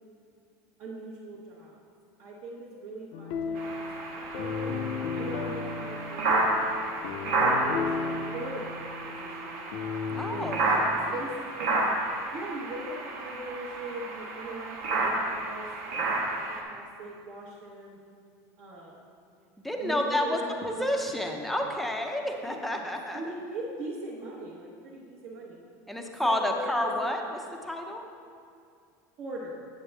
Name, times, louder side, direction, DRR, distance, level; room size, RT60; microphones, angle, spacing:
voice 1, 0.8-1.8 2.2-4.7 5.2-8.8 9.1-9.6 10.3-10.6 10.9-11.8 12.3-15.7 16.0-18.0 18.6-19.0 19.8-21.1 22.5-25.6 26.2-26.9 29.2-29.6, right 1 dB, 45° right, -6 dB, 1.0 m, -40 dB
sound 1, 3.1-10.6, left 5 dB, 60° left, 0.6 m, -35 dB
sound 2, 3.5-16.6, right 2 dB, 90° right, 1.4 m, -31 dB
voice 2, 10.2-10.7 11.0-11.2 19.6-23.2 25.9-28.0, left 1 dB, ahead, 2 dB, 0.5 m, -30 dB
8.4 x 7.8 x 3.3 m, 2.4 s
cardioid pair, 165°, 8 cm